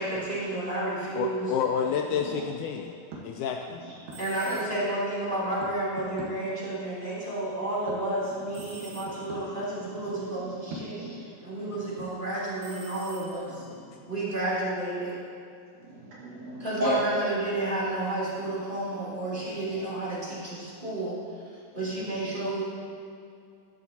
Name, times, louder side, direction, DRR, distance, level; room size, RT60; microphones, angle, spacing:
voice 1, 0.0-1.5 4.2-13.6 14.1-15.1 16.6-21.2 21.4-22.6, right 1 dB, 15° right, -9 dB, 2.8 m, -31 dB
sound 1, 1.0-12.1, right 2 dB, 90° right, 3.1 m, -48 dB
voice 2, 1.2-2.9 3.2-3.8 14.5-14.7, left 7 dB, 80° left, 3 dB, 1.8 m, -29 dB
voice 3, 2.2-2.5 3.8-3.9 4.4-4.6 8.4-9.6 9.9-11.2 11.5-11.9 13.7-14.0 15.8-17.0 19.2-19.9, right 2 dB, 65° right, -10 dB, 3.7 m, -37 dB
sound 2, 4.1-5.0 8.5-9.5 12.6-13.7, right 3 dB, 40° right, 2.2 m, -48 dB
14.0 x 11.5 x 2.9 m, 2.5 s
omnidirectional pair, 3.9 m